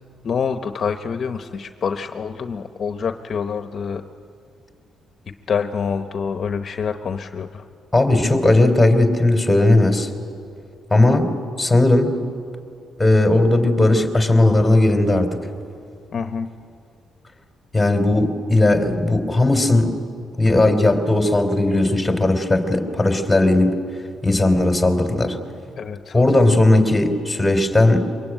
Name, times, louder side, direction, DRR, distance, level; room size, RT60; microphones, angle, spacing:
voice 1, 0.2-4.0 5.5-7.6 16.1-16.5 25.8-26.2, left 6 dB, 50° left, 7 dB, 1.0 m, -26 dB
voice 2, 7.9-10.1 10.9-11.3 11.6-12.1 13.0-15.4 17.7-19.9 20.4-23.7 24.2-25.4 26.1-28.1, left 2 dB, 10° left, 5 dB, 3.2 m, -17 dB
23.5 x 22.5 x 9.1 m, 2.5 s
cardioid pair, 90°, 0 cm